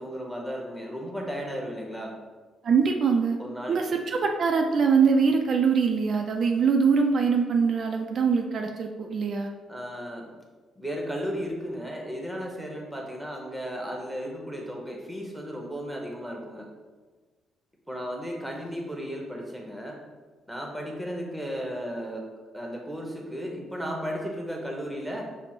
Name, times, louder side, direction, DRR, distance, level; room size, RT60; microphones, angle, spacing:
voice 1, 0.0-2.2 3.4-4.0 9.7-10.3 10.8-16.7 17.9-20.0 20.5-22.2 22.5-25.2, equal, ahead, 0 dB, 0.9 m, -35 dB
voice 2, 2.6-3.4 3.7-9.5, right 5 dB, 50° right, 3 dB, 0.4 m, -23 dB
5.9 x 2.1 x 4.2 m, 1.3 s
cardioid pair, 125°, 0 cm